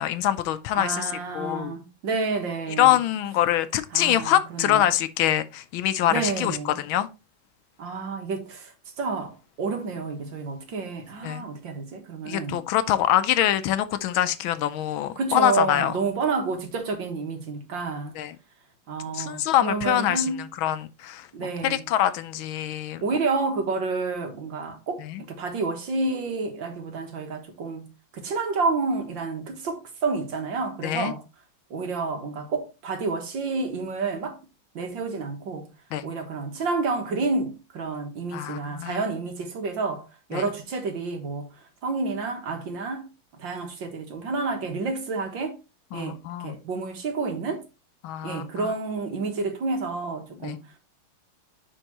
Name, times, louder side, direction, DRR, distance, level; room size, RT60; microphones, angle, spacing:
voice 1, 0.0-1.7 2.8-7.1 11.2-11.4 12.2-15.9 18.2-18.4 19.1-21.3 21.6-23.0 25.0-25.2 30.8-31.1 35.9-36.1 38.3-39.0 40.3-40.5 45.9-46.5 48.0-48.7 50.4-50.6, left 12 dB, 75° left, 1.4 m, -24 dB
voice 2, 0.7-3.0 3.9-4.8 6.1-6.8 7.8-12.6 15.2-18.2 18.9-20.4 21.3-21.8 23.0-31.2 31.7-34.4 34.7-35.7 36.0-43.1 43.4-45.6 45.9-47.6 48.2-50.8, right 4 dB, 65° right, 2.1 m, -29 dB
10.0 x 4.5 x 2.9 m
omnidirectional pair, 2.3 m